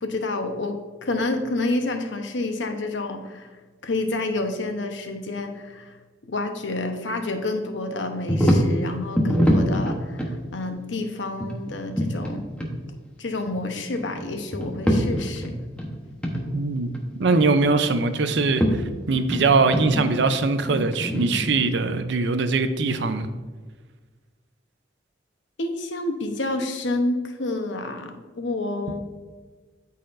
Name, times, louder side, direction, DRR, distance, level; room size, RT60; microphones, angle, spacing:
voice 1, 0.0-3.5 3.8-5.9 6.3-12.5 13.2-15.5 25.6-29.0, left 2 dB, 80° left, 5 dB, 0.9 m, -29 dB
sound 1, 8.3-8.7 9.2-10.3 11.4-12.3 12.6-12.7 13.5-14.2 14.5-15.9 16.2-16.4 16.8-17.7 18.3-18.7 19.1-21.7, equal, 5° left, 0.9 m, -24 dB
voice 2, 16.5-23.3, right 3 dB, 70° right, 10 dB, 0.5 m, -22 dB
12.5 x 4.2 x 2.6 m, 1.4 s
head